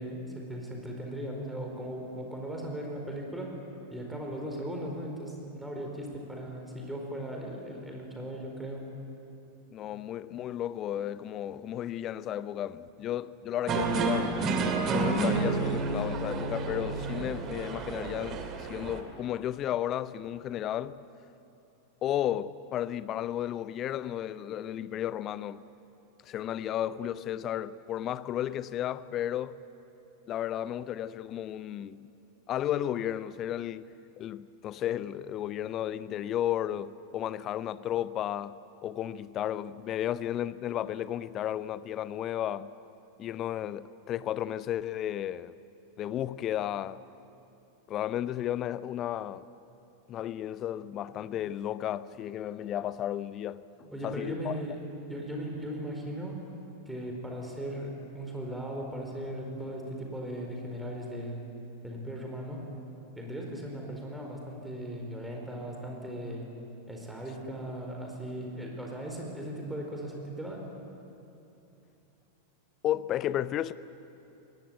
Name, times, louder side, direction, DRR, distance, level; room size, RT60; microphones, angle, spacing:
voice 1, 0.0-3.6 3.9-8.8 53.9-54.8 55.1-56.4 56.9-61.4 61.8-62.7 63.2-66.5 66.9-70.7, right 1 dB, 5° right, 4.6 m, -38 dB
voice 2, 9.7-14.3 14.9-21.0 22.0-25.6 26.2-29.6 30.3-32.1 32.5-33.9 34.2-42.7 43.2-45.5 46.0-47.0 47.9-49.5 50.1-54.6 72.8-73.7, left 11 dB, 30° left, 0.6 m, -33 dB
sound 1, 13.7-19.0, right 3 dB, 30° right, 2.3 m, -30 dB
21.0 x 18.0 x 9.3 m
figure-of-eight pair, 90°, 0 cm